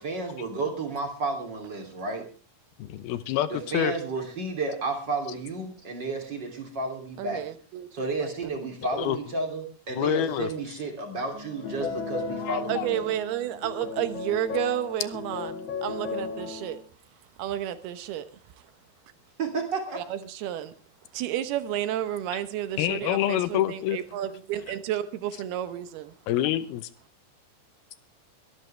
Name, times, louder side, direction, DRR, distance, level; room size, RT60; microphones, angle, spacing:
voice 1, 0.0-2.3 3.5-7.4 7.9-13.1 19.4-20.0, right 3 dB, 30° right, 3.2 m, -32 dB
voice 2, 2.8-3.9 9.0-9.2 9.9-10.5 12.4-12.9 22.8-24.0 26.3-26.9, left 12 dB, 80° left, 2.8 m, -27 dB
voice 3, 7.2-8.3 12.7-16.8 17.4-18.3 19.9-20.7 21.1-26.1, right 12 dB, 85° right, 3.0 m, -31 dB
sound 1, 11.3-16.8, left 5 dB, 45° left, 2.8 m, -35 dB
23.0 x 12.5 x 3.4 m
omnidirectional pair, 4.4 m